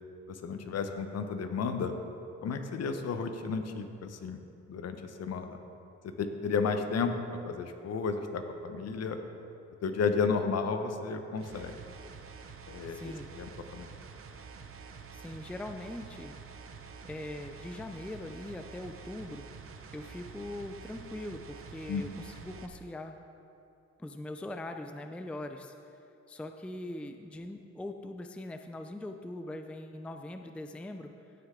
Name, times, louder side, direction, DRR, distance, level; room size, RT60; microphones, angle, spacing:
voice 1, 0.3-1.9 2.4-4.4 4.7-5.6 6.0-9.2 9.8-11.8 12.7-13.9 21.9-22.0, left 5 dB, 55° left, 7 dB, 0.9 m, -33 dB
sound 1, 11.4-22.7, right 5 dB, 45° right, 0.8 m, -48 dB
voice 2, 12.9-13.5 15.1-16.3 17.0-19.5 19.9-23.2 24.0-25.7 26.3-31.1, left 1 dB, 5° left, 6 dB, 0.4 m, -41 dB
16.0 x 6.6 x 3.7 m, 2.7 s
cardioid pair, 90°, 30 cm